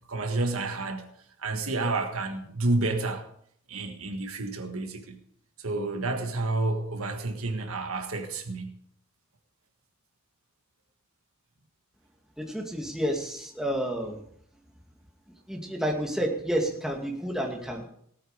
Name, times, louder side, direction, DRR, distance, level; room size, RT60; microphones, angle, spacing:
voice 1, 0.1-1.1 1.4-3.3 3.7-5.2 5.6-8.8, right 2 dB, 75° right, 1.6 m, -30 dB
voice 2, 12.4-14.2 15.5-17.8, equal, 5° right, 2.3 m, -30 dB
18.0 x 8.8 x 5.0 m
head